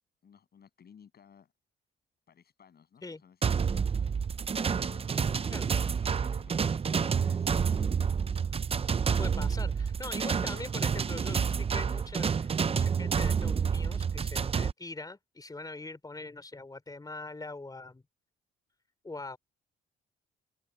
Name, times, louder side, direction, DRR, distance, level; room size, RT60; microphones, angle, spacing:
voice 1, 0.2-1.5 2.3-4.4 4.8-8.3, left 7 dB, 50° left, 7.6 m, -57 dB
sound 1, 3.4-14.7, right 6 dB, 30° right, 0.6 m, -29 dB
voice 2, 5.5-5.9 9.2-18.0 19.0-19.4, left 3 dB, 20° left, 3.3 m, -43 dB
cardioid pair, 90°, 20 cm